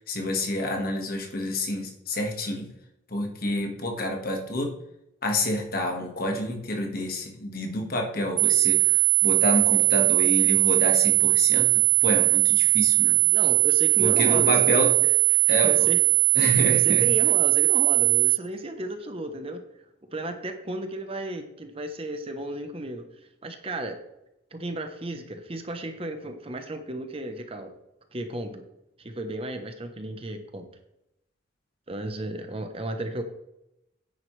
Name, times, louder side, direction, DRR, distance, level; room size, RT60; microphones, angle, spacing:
voice 1, 0.0-2.7 3.1-4.7 5.2-13.2 14.0-14.9 15.5-15.9 16.3-17.1, left 1 dB, 45° left, 2 dB, 1.7 m, -28 dB
sound 1, 8.4-18.4, right 24 dB, 85° right, 0.6 m, -20 dB
voice 2, 13.3-16.0 16.4-19.6 20.1-23.0 23.4-24.0 24.5-27.7 28.1-28.6 29.0-30.6 31.9-33.2, right 1 dB, 30° right, 6 dB, 0.9 m, -34 dB
10.5 x 9.5 x 3.3 m, 0.85 s
head